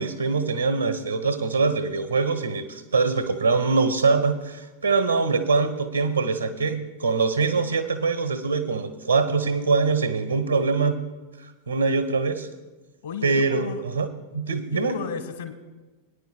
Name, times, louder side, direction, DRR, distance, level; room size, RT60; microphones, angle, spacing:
voice 1, 0.0-11.0 11.7-12.5 13.2-13.7 14.0-14.1 14.3-14.9, right 4 dB, 80° right, 8 dB, 1.1 m, -23 dB
voice 2, 13.0-13.8 14.7-15.5, left 6 dB, 60° left, 8 dB, 1.4 m, -33 dB
22.0 x 9.8 x 2.3 m, 1.2 s
figure-of-eight pair, 90°, 0 cm